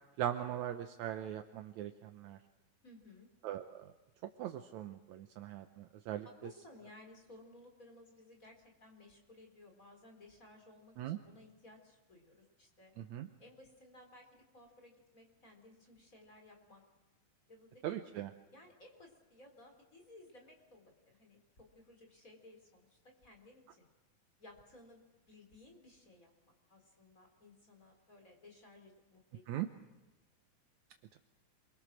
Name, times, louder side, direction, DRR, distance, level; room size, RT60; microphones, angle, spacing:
voice 1, 0.2-2.4 3.4-3.9 4.4-6.3 11.0-11.2 13.0-13.3 17.8-18.3 29.5-29.7, right 11 dB, 70° right, 6 dB, 1.8 m, -40 dB
voice 2, 2.8-3.3 6.4-12.9 13.4-16.8 17.5-18.0 18.5-23.9 24.4-25.0 25.3-29.6, left 2 dB, 20° left, 3 dB, 4.2 m, -59 dB
28.0 x 23.0 x 6.3 m, 1.1 s
omnidirectional pair, 4.1 m